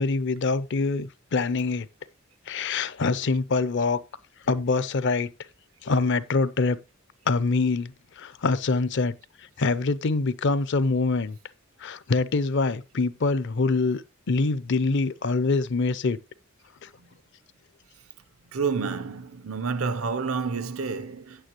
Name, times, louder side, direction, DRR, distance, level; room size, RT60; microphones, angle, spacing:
voice 1, 0.0-1.9 2.5-4.0 4.5-5.3 5.8-6.8 7.3-9.1 9.6-11.4 11.8-16.2 16.8-16.9, left 3 dB, 60° left, 0.6 m, -25 dB
voice 2, 18.5-21.5, right 5 dB, 85° right, 0.7 m, -29 dB
9.4 x 9.1 x 3.0 m
head